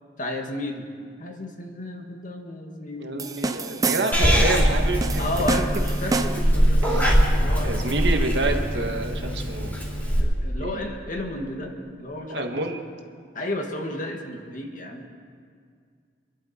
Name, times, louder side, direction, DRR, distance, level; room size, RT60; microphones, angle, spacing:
voice 1, 0.2-0.9 1.2-3.3 3.7-4.2 5.2-7.9 10.2-12.7 13.3-15.1, left 1 dB, 50° left, 2 dB, 1.9 m, -33 dB
voice 2, 3.0-5.2 6.8-7.2 7.6-9.9 10.6-10.8 12.3-12.8, right 2 dB, 80° right, 4 dB, 1.5 m, -28 dB
sound 1, 3.2-4.4 5.0-6.6, right 3 dB, 20° right, 0.6 m, -28 dB
Purr / Meow, 4.1-10.2, equal, 10° left, 3.7 m, -22 dB
27.0 x 11.5 x 4.4 m, 2.1 s
head